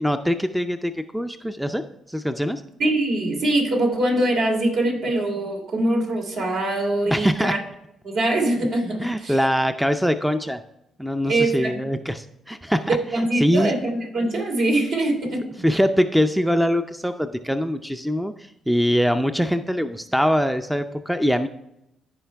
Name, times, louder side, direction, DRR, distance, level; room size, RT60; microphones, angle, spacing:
voice 1, 0.0-1.8 2.1-2.6 7.1-7.5 9.0-10.6 11.0-13.8 15.6-21.5, equal, ahead, 9 dB, 0.5 m, -23 dB
voice 2, 2.8-7.6 8.0-9.4 11.2-11.8 12.9-15.6, right 1 dB, 65° right, 0 dB, 3.1 m, -23 dB
14.5 x 5.0 x 3.4 m, 0.85 s
cardioid pair, 90°, 0 cm